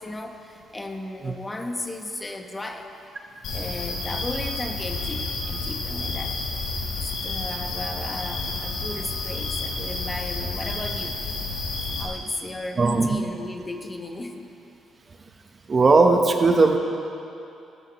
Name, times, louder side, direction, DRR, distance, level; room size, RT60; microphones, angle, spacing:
voice 1, 0.0-2.9 3.5-6.4 7.0-11.2 12.0-14.5, left 2 dB, 20° left, 3 dB, 1.4 m, -35 dB
sound 1, 3.4-12.0, left 3 dB, 70° left, 4.5 m, -30 dB
voice 2, 12.8-13.2 15.7-16.8, right 3 dB, 35° right, 4 dB, 1.2 m, -18 dB
30.0 x 13.5 x 3.2 m, 2.7 s
cardioid pair, 90°, 0 cm